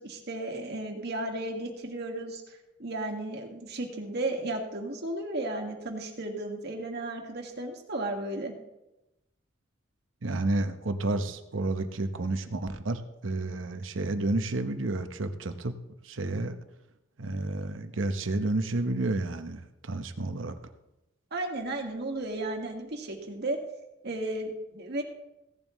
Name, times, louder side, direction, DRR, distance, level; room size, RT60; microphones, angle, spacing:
voice 1, 0.0-8.5 21.3-23.6 24.0-25.0, right 2 dB, 60° right, 2 dB, 1.9 m, -34 dB
voice 2, 10.2-15.8 16.0-16.6 17.2-20.6, right 2 dB, 85° right, 9 dB, 0.9 m, -30 dB
16.5 x 10.5 x 3.1 m, 0.93 s
head